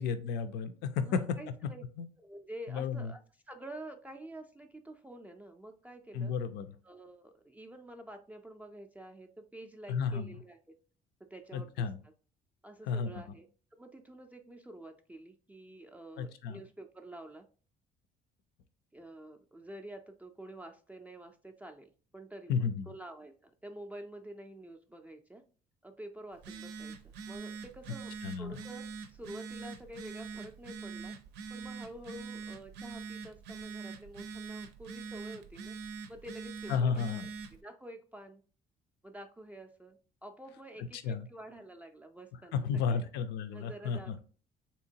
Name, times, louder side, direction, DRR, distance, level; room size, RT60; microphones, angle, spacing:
voice 1, 0.0-1.2 2.0-2.1 2.7-3.1 6.1-6.7 9.9-10.3 11.5-12.0 12.9-13.1 16.2-16.6 22.5-22.8 28.2-28.6 36.7-37.3 41.0-41.3 42.5-44.1, left 6 dB, 80° left, 11 dB, 0.5 m, -32 dB
voice 2, 1.0-1.8 2.2-6.3 6.8-10.7 11.2-12.1 12.6-17.5 18.9-25.4 25.8-31.1 31.5-35.8 36.1-38.4 39.0-43.0 43.5-44.2, right 1 dB, 10° right, 4 dB, 0.3 m, -49 dB
Telephone, 26.3-37.6, right 5 dB, 85° right, 0.5 m, -44 dB
3.5 x 2.9 x 2.7 m, 0.39 s
cardioid pair, 110°, 17 cm